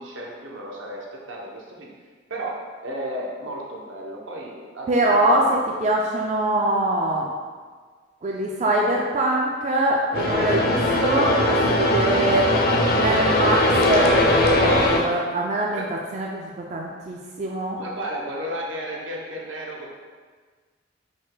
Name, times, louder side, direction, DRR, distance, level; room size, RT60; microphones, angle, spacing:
voice 1, 0.0-1.9 2.3-5.6 15.7-15.9 17.7-19.9, right 1 dB, 80° right, -2 dB, 0.8 m, -34 dB
voice 2, 4.9-7.3 8.2-12.5 12.9-15.8 16.1-17.8, right 1 dB, 35° right, -1 dB, 0.3 m, -23 dB
sound 1, 10.1-15.0, left 1 dB, 50° left, 0.6 m, -20 dB
4.9 x 2.2 x 3.8 m, 1.5 s
head